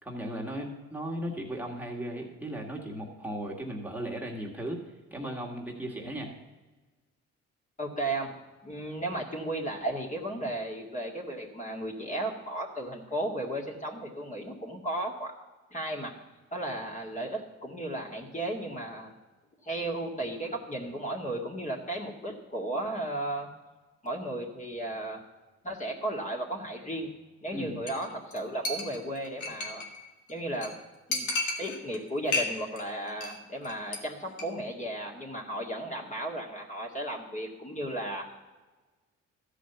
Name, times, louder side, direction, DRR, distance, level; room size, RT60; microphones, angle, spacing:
voice 1, 0.0-4.8 5.1-6.3 27.5-27.8, right 1 dB, 5° right, -2 dB, 1.8 m, -36 dB
voice 2, 7.8-15.3 15.7-16.1 16.5-19.1 19.6-23.5 24.0-25.2 25.6-27.1 27.4-29.8 30.3-30.7 31.1-31.3 31.6-38.4, right 1 dB, 25° left, 0 dB, 1.9 m, -34 dB
Chink clink, 27.9-28.1 28.3-28.4 28.7-30.0 30.3-30.4 30.6-30.7 31.1-32.0 32.3-32.8 33.1-33.4 33.6-34.0 34.3-34.4, left 3 dB, 75° left, 1.9 m, -32 dB
13.5 x 5.1 x 8.0 m, 1.2 s
cardioid pair, 90°, 30 cm